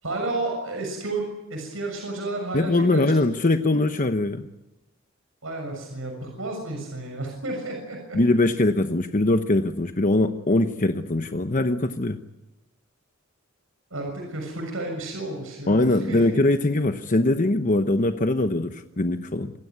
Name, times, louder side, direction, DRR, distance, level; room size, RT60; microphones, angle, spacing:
voice 1, 0.0-3.0 5.4-8.2 13.9-16.4, right 2 dB, 80° right, 2 dB, 6.8 m, -32 dB
voice 2, 2.5-4.5 8.1-12.2 15.7-19.5, left 2 dB, 40° left, 8 dB, 1.0 m, -22 dB
27.0 x 17.0 x 9.5 m, 1.0 s
head